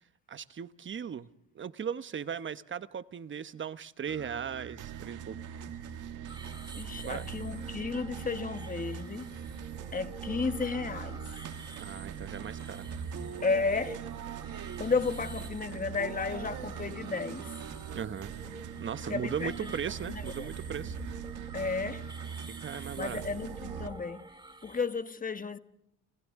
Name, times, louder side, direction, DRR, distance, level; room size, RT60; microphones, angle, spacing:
voice 1, 0.3-1.3 1.5-5.4 7.0-7.2 11.8-12.9 17.9-18.3 18.8-21.0 22.5-23.2, right 7 dB, 40° right, 0.9 m, -37 dB
sound 1, 4.1-23.9, right 8 dB, 80° right, 1.6 m, -41 dB
sound 2, 6.3-24.8, right 2 dB, 15° right, 2.8 m, -49 dB
voice 2, 6.7-9.3 9.9-11.4 13.4-14.0 14.8-17.5 19.1-19.7 20.1-20.5 21.5-22.1 23.0-24.3 24.6-25.6, left 4 dB, 30° left, 1.2 m, -33 dB
29.5 x 28.0 x 3.6 m
cardioid pair, 90°, 30 cm